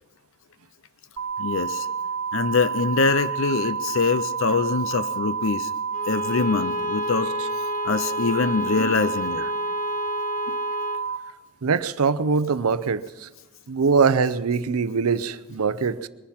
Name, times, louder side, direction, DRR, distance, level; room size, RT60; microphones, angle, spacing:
sound 1, 1.2-11.2, right 6 dB, 60° right, 1.3 m, -29 dB
voice 1, 1.4-1.9 2.3-5.7 6.1-7.3 7.8-9.4 10.5-10.6, left 4 dB, 60° left, 14 dB, 0.5 m, -24 dB
Bowed string instrument, 5.9-11.1, left 7 dB, 35° left, 1.0 m, -33 dB
voice 2, 11.6-13.3 13.7-16.1, right 5 dB, 85° right, 15 dB, 0.6 m, -23 dB
23.0 x 10.5 x 5.8 m, 1.2 s
head